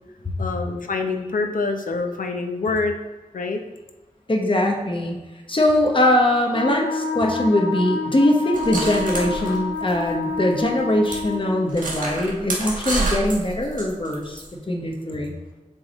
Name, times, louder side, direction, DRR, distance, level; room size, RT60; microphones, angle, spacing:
voice 1, 0.4-2.9 3.3-3.6, left 3 dB, 85° left, 5 dB, 0.7 m, -25 dB
voice 2, 4.3-5.2 5.5-15.4, left 1 dB, 40° left, 1 dB, 1.1 m, -21 dB
Wind instrument woodwind instrument, 6.5-11.7, left 3 dB, 20° left, 1.9 m, -28 dB
sound 1, 8.5-10.3 10.6-10.7 11.1-11.2 11.7-14.5, right 2 dB, 80° right, 1.5 m, -28 dB
7.2 x 3.7 x 4.1 m, 1.1 s
wide cardioid pair, 70°, 14 cm